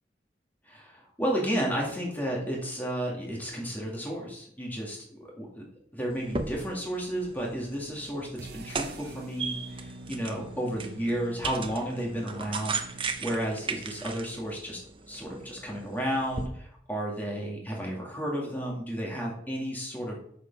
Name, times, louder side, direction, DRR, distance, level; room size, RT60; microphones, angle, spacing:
voice 1, 0.7-5.6 5.9-8.3 8.5-14.8 15.1-20.2, equal, 10° left, -3 dB, 2.0 m, -32 dB
sound 1, 6.1-16.5, right 4 dB, 30° right, 0.8 m, -38 dB
sound 2, 8.4-14.5, right 2 dB, 60° right, 0.7 m, -46 dB
6.9 x 6.3 x 5.3 m, 0.65 s
head